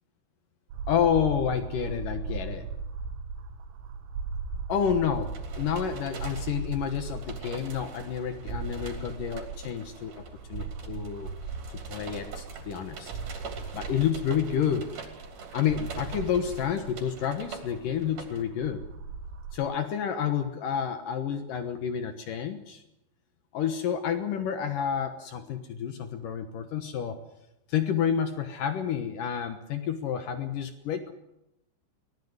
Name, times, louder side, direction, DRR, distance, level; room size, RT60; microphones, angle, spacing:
sound 1, 0.7-19.6, right 4 dB, 75° right, 3.8 m, -38 dB
voice 1, 0.9-2.7 4.7-10.2 10.5-11.3 11.9-13.1 13.7-14.9 15.5-18.8 19.5-22.8 23.5-27.2 27.7-31.1, left 8 dB, 80° left, 8 dB, 1.9 m, -29 dB
sound 2, 5.1-18.4, right 5 dB, 45° right, 3.9 m, -45 dB
23.5 x 19.0 x 8.1 m, 0.86 s
omnidirectional pair, 5.8 m